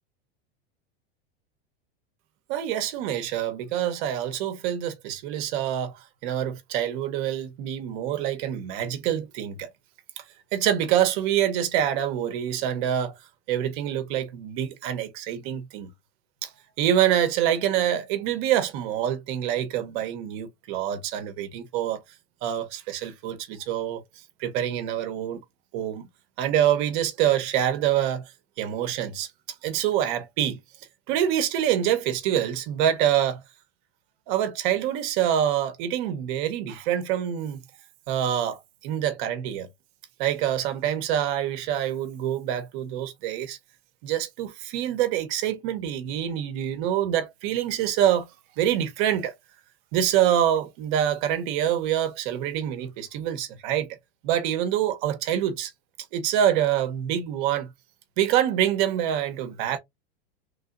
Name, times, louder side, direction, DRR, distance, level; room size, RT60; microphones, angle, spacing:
voice 1, 2.5-9.7 10.2-10.3 10.5-13.1 13.5-15.9 16.4-16.5 16.8-22.0 22.4-24.0 24.4-25.4 25.7-26.1 26.4-28.3 28.6-29.3 29.6-30.6 31.1-33.4 34.3-37.6 38.1-39.7 40.2-43.6 44.0-48.3 48.6-49.3 49.9-53.9 54.2-55.7 56.1-57.7 58.2-59.8, right 10 dB, 55° right, 0.8 m, -26 dB
3.2 x 2.7 x 2.4 m
supercardioid pair, 145°, 31 cm